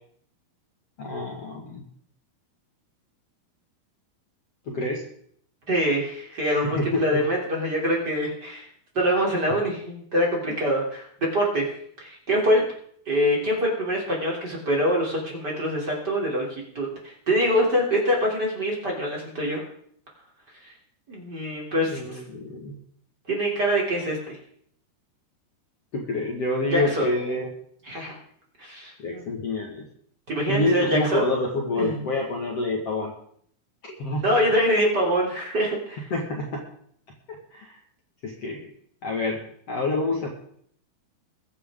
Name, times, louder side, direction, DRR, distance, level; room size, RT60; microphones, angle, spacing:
voice 1, 1.0-1.8 4.7-5.0 6.5-7.0 21.9-22.7 25.9-27.5 29.0-29.9 30.5-33.1 33.8-34.2 36.1-36.6 37.3-37.7 38.2-38.6 39.0-40.3, left 2 dB, 50° left, -1 dB, 2.4 m, -27 dB
voice 2, 5.7-8.6 8.9-11.1 11.3-11.6 12.0-12.6 13.1-19.6 20.6-20.7 21.1-22.2 23.3-24.4 26.7-27.1 27.9-28.1 28.6-29.2 30.3-31.2 31.7-32.0 34.2-36.1, equal, 30° right, -2 dB, 3.4 m, -24 dB
22.0 x 9.7 x 3.7 m, 0.64 s
omnidirectional pair, 4.4 m